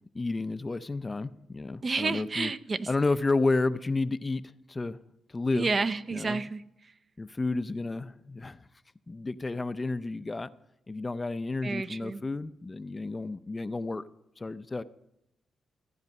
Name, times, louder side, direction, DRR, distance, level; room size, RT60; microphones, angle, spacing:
voice 1, 0.1-2.5 2.9-4.4 4.7-5.0 5.3-5.7 6.1-6.4 7.2-8.6 9.1-10.5 10.9-14.0 14.4-14.8, left 3 dB, 25° left, 14 dB, 0.5 m, -31 dB
voice 2, 1.8-2.9 5.5-6.9 11.6-12.2, right 4 dB, 40° right, 12 dB, 0.6 m, -30 dB
14.5 x 9.6 x 5.3 m, 0.84 s
cardioid pair, 80°, 0 cm